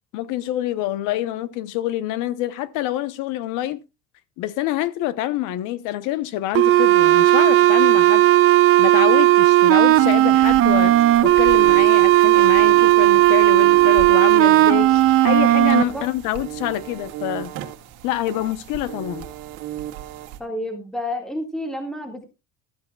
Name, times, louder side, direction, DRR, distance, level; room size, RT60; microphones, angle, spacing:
voice 1, 0.1-3.8 4.4-8.3 8.8-17.5 18.0-19.3, left 14 dB, 60° left, 1.0 m, -26 dB
sound 1, 6.5-15.8, right 16 dB, 40° right, 0.7 m, -15 dB
sound 2, 9.9-20.4, right 12 dB, 65° right, 1.9 m, -35 dB
voice 2, 20.4-22.2, left 1 dB, ahead, 1.9 m, -29 dB
15.0 x 13.5 x 2.4 m
cardioid pair, 170°, 34 cm